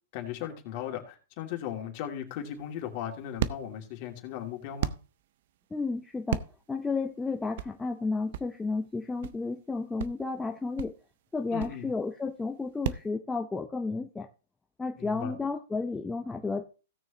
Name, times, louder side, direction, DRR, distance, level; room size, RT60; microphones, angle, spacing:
voice 1, 0.1-4.9 11.5-11.9 15.0-15.4, left 10 dB, 45° left, 2.7 m, -37 dB
sound 1, 2.3-13.1, right 11 dB, 60° right, 0.7 m, -37 dB
voice 2, 5.7-6.4 6.7-10.9 11.3-14.3 14.8-16.7, left 3 dB, 10° left, 0.8 m, -32 dB
17.0 x 6.4 x 3.0 m
hypercardioid pair, 135°, 0 cm